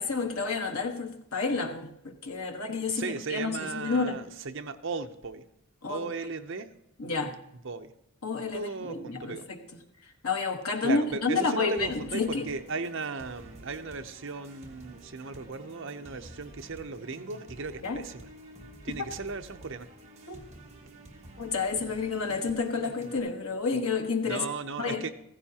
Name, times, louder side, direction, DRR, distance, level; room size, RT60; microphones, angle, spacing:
voice 1, 0.0-4.2 5.8-6.0 7.0-7.4 8.2-9.6 10.2-12.5 17.8-18.0 20.3-20.4 21.4-24.4 24.8-25.0, left 4 dB, 80° left, 1.3 m, -30 dB
voice 2, 2.9-5.4 5.9-6.7 7.6-7.9 8.5-9.4 10.8-18.3 18.8-19.9 24.3-25.1, right 4 dB, 55° right, 0.7 m, -36 dB
sound 1, 11.8-23.2, right 1 dB, 30° right, 1.5 m, -50 dB
15.0 x 15.0 x 2.9 m
head